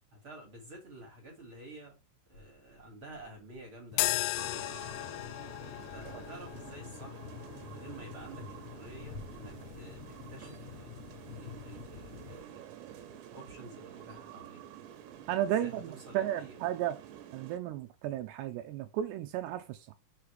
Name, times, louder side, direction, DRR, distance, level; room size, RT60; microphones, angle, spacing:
voice 1, 0.1-2.0 2.3-5.1 5.7-7.3 7.6-14.6 15.6-16.6, right 2 dB, 35° right, 2.3 m, -51 dB
sound 1, 2.3-4.2 4.6-7.0 7.6-10.3, left 1 dB, 45° left, 2.7 m, -54 dB
sound 2, 3.9-12.4, left 18 dB, 85° left, 3.1 m, -39 dB
sound 3, 4.4-17.6, right 10 dB, 70° right, 3.2 m, -49 dB
voice 2, 15.3-17.0 17.3-19.9, right 11 dB, 85° right, 2.4 m, -34 dB
6.8 x 6.6 x 3.5 m
omnidirectional pair, 5.9 m